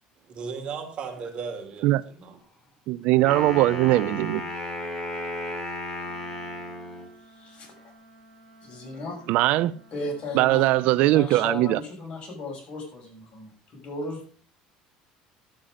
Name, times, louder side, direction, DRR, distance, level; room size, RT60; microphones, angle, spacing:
voice 1, 0.3-2.4, right 5 dB, 40° right, 3.1 m, -36 dB
voice 2, 2.9-4.4 9.3-9.7 10.3-11.8, right 16 dB, 70° right, 0.5 m, -20 dB
Wind instrument woodwind instrument, 3.1-7.1, left 1 dB, 25° left, 3.5 m, -34 dB
Wind instrument woodwind instrument 2, 6.0-10.8, right 1 dB, ahead, 5.7 m, -54 dB
voice 3, 7.4-7.7 8.6-9.3 9.9-14.4, left 2 dB, 45° left, 6.2 m, -36 dB
11.5 x 8.7 x 5.1 m
supercardioid pair, 110°, 3 cm